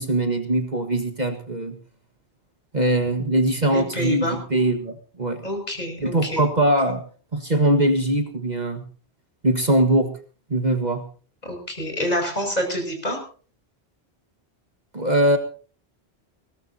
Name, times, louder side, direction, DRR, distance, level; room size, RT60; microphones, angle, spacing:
voice 1, 0.0-1.8 2.7-5.4 6.0-7.0 7.3-8.9 9.4-10.1 10.5-11.1 14.9-15.4, right 1 dB, 40° right, 6 dB, 1.6 m, -21 dB
voice 2, 3.7-4.4 5.4-6.4 11.4-13.2, equal, 40° left, 3 dB, 6.1 m, -27 dB
21.0 x 18.0 x 2.8 m, 0.40 s
omnidirectional pair, 1.1 m